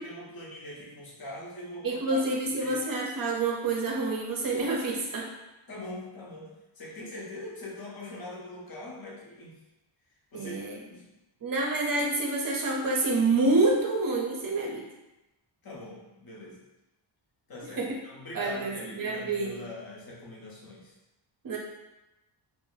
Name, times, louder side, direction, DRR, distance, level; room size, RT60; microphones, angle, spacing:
voice 1, 0.0-2.3 2.6-2.8 5.7-9.6 10.3-10.6 10.9-11.1 15.6-16.6 17.5-20.9, left 1 dB, 50° left, -4 dB, 0.8 m, -42 dB
voice 2, 1.8-5.3 10.3-10.8 11.4-14.9 17.8-17.9 18.3-19.6 21.4-21.6, right 2 dB, 45° right, -1 dB, 0.5 m, -27 dB
2.4 x 2.1 x 3.8 m, 0.99 s
wide cardioid pair, 165°, 47 cm